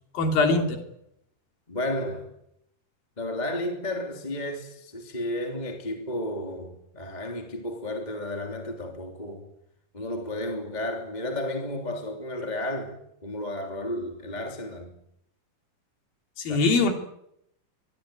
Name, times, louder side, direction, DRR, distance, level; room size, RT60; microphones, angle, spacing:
voice 1, 0.1-0.8 16.4-16.9, left 3 dB, 75° left, 4.8 m, -22 dB
voice 2, 1.7-2.3 3.2-9.5 9.9-14.9 16.5-16.6, left 1 dB, 10° left, 2.9 m, -32 dB
24.0 x 21.5 x 9.2 m
omnidirectional pair, 4.1 m